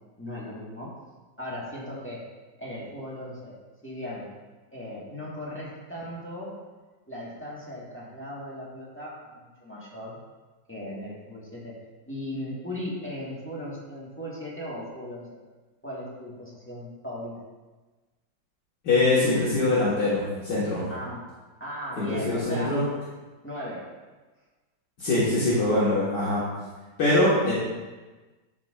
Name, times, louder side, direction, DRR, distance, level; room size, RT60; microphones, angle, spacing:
voice 1, 0.2-0.9 1.4-2.2 2.6-3.6 3.8-4.3 4.7-6.6 7.1-10.2 10.7-11.8 12.0-15.4 15.8-17.3 20.9-21.2 21.6-22.8 23.4-23.9, left 1 dB, 5° left, -6 dB, 1.3 m, -37 dB
voice 2, 18.8-20.8 22.0-22.8 25.0-26.4 27.0-27.5, left 2 dB, 65° left, -10 dB, 2.1 m, -23 dB
12.5 x 4.6 x 2.5 m, 1.2 s
omnidirectional pair, 2.1 m